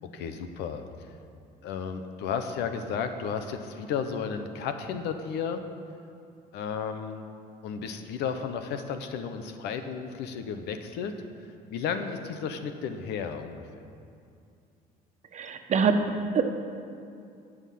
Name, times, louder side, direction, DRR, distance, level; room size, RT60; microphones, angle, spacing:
voice 1, 0.0-0.8 1.6-5.6 6.5-7.3 7.6-11.1 11.7-13.6, left 6 dB, 85° left, 8 dB, 1.1 m, -33 dB
voice 2, 15.3-16.4, right 5 dB, 45° right, 5 dB, 1.2 m, -25 dB
18.0 x 6.4 x 7.6 m, 2.5 s
cardioid pair, 110°, 17 cm